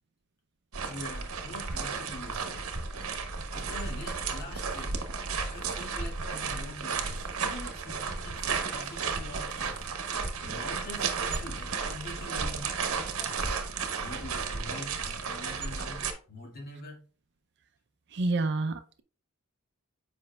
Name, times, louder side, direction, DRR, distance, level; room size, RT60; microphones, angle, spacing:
sound 1, 0.7-16.1, right 5 dB, 70° right, 1.0 m, -33 dB
voice 1, 0.8-2.6 3.5-9.9 10.2-12.7 13.2-13.6 14.0-17.0, left 2 dB, 45° left, 2.0 m, -45 dB
voice 2, 18.1-19.0, right 2 dB, 55° right, 0.5 m, -28 dB
7.8 x 5.2 x 2.3 m
head